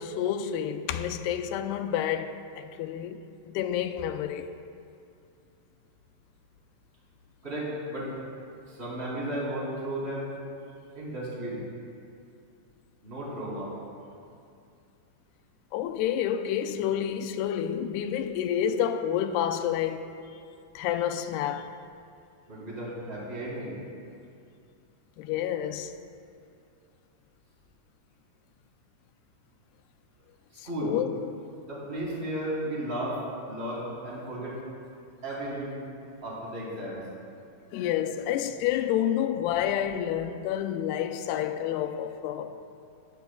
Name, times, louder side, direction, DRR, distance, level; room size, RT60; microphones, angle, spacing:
voice 1, 0.0-3.2 3.5-4.5 15.7-20.1 20.8-21.7 25.2-25.9 30.8-31.3 37.7-42.6, left 10 dB, 85° left, 2.6 m, -29 dB
voice 2, 7.4-8.1 8.7-10.3 11.0-11.6 13.0-13.7 22.5-23.8 30.5-30.9 31.6-33.2 33.5-34.5 35.2-35.8 36.2-37.0, right 1 dB, 15° right, 3.5 m, -34 dB
23.0 x 12.0 x 2.3 m
omnidirectional pair, 4.7 m